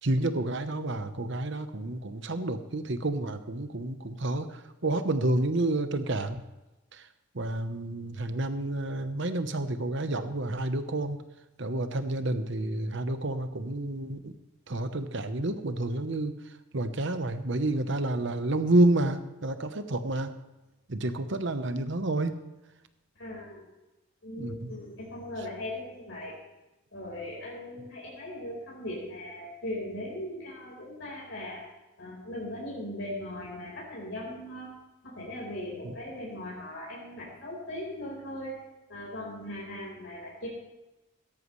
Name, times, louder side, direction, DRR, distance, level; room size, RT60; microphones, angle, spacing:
voice 1, 0.0-6.4 6.9-7.0 7.3-11.2 11.6-14.3 14.7-16.3 16.7-20.3 20.9-22.3 24.4-24.7 35.8-35.9, right 2 dB, 60° right, 9 dB, 1.0 m, -29 dB
voice 2, 23.2-23.7 24.2-26.4 26.9-31.6 32.0-34.7 35.0-38.5 38.9-40.5, left 1 dB, 65° left, -4 dB, 4.6 m, -39 dB
16.5 x 13.5 x 3.2 m, 1.0 s
head